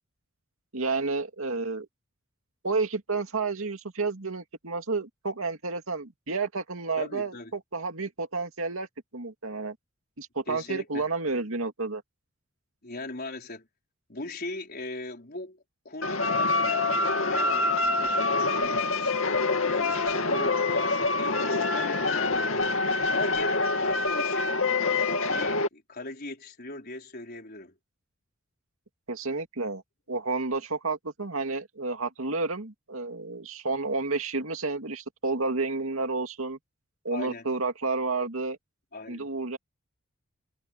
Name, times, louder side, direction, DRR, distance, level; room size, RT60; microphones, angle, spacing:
voice 1, 0.7-1.9 2.6-8.9 9.1-9.8 10.2-12.0 20.3-20.5 29.1-29.8 30.1-36.6 37.0-38.6 39.1-39.6, right 3 dB, 80° right, 2.4 m, -30 dB
voice 2, 7.0-7.5 10.5-11.0 12.8-13.7 14.1-19.2 19.7-22.7 23.1-24.6 25.0-27.7 37.1-37.5 38.9-39.3, left 2 dB, 50° left, 4.7 m, -39 dB
sound 1, 16.0-25.7, left 3 dB, 70° left, 2.4 m, -26 dB
head